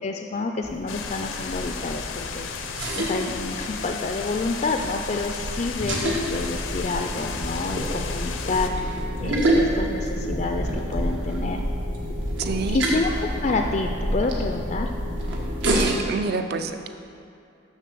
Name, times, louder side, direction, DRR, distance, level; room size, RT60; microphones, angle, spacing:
voice 1, 0.0-2.5 2.9-8.7 9.2-11.6 12.7-13.1 13.4-14.9, left 3 dB, 35° left, 3 dB, 0.3 m, -28 dB
sound 1, 0.6-15.9, right 1 dB, 80° right, 1.4 m, -28 dB
sound 2, 0.9-8.7, left 6 dB, 85° left, 0.7 m, -34 dB
voice 2, 12.4-12.8 15.6-16.9, right 4 dB, 55° right, 8 dB, 0.5 m, -27 dB
7.3 x 6.2 x 6.8 m, 2.5 s
head